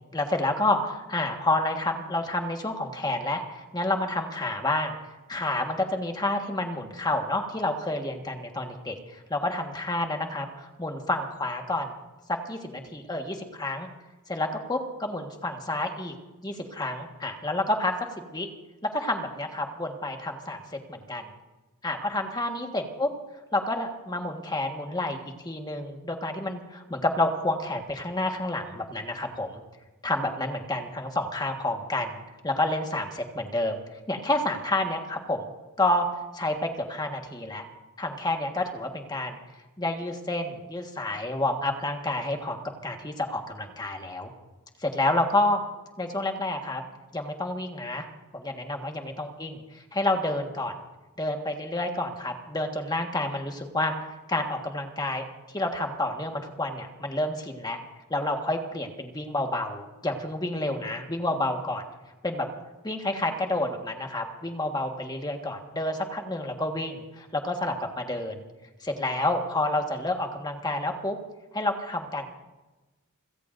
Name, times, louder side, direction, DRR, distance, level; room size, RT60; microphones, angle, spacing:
voice 1, 0.1-4.9 5.3-11.9 12.3-13.9 14.3-16.1 16.4-18.0 18.3-18.5 18.8-21.3 21.8-23.1 23.5-29.6 30.0-33.8 34.1-35.5 35.8-36.1 36.3-37.6 38.0-39.4 39.8-44.3 44.8-45.6 46.0-46.8 47.1-48.1 48.3-50.8 51.2-57.8 58.1-61.8 62.2-62.5 62.8-68.4 68.8-71.2 71.5-72.3, left 2 dB, 20° left, 3 dB, 1.5 m, -29 dB
29.5 x 16.5 x 2.6 m, 1.1 s
head